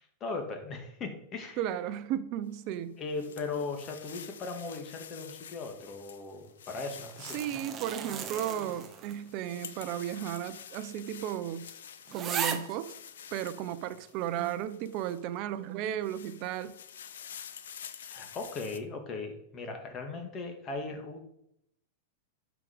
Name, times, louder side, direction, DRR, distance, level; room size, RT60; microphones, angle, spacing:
voice 1, 0.0-1.6 3.0-7.6 18.1-21.2, left 3 dB, 30° left, 4 dB, 1.9 m, -38 dB
voice 2, 1.6-3.0 7.2-11.7 12.1-12.9 13.3-16.7, right 11 dB, 45° right, 13 dB, 0.7 m, -34 dB
sound 1, 2.5-15.4 15.8-18.8, left 8 dB, 85° left, 0.7 m, -49 dB
sound 2, 6.9-9.3 9.7-9.8 10.6-10.7 11.1-11.2 11.7-11.8 12.1-12.8 13.5-13.6, right 7 dB, 25° right, 1.0 m, -37 dB
12.0 x 5.0 x 5.1 m, 0.77 s
supercardioid pair, 140°, 0 cm